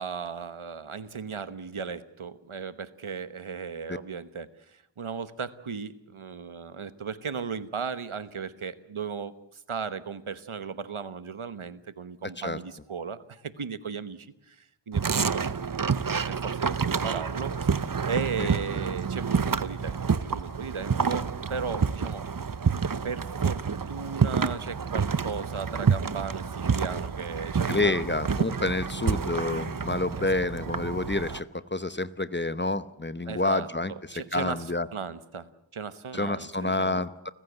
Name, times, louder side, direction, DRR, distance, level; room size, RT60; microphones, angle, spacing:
voice 1, 0.0-15.9 16.3-22.3 22.7-28.2 30.2-30.3 33.3-37.0, right 6 dB, 85° right, 14 dB, 1.1 m, -36 dB
sound 1, 14.9-31.4, right 6 dB, 45° right, 0.8 m, -28 dB
voice 2, 27.7-31.4 31.7-33.9 34.3-34.9 36.1-37.3, left 2 dB, 25° left, 15 dB, 0.9 m, -28 dB
29.5 x 15.5 x 8.1 m, 0.83 s
wide cardioid pair, 45°, 48 cm